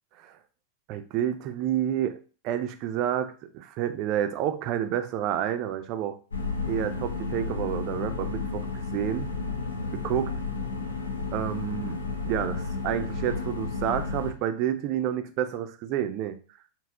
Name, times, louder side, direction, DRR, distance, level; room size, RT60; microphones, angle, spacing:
voice 1, 0.9-2.2 2.4-6.2 6.7-9.3 10.0-10.3 11.3-12.0 12.3-16.4, right 10 dB, 40° right, 8 dB, 0.4 m, -29 dB
sound 1, 6.3-14.3, left 4 dB, 75° left, 0.7 m, -32 dB
4.2 x 2.1 x 3.5 m, 0.37 s
figure-of-eight pair, 90°, 0 cm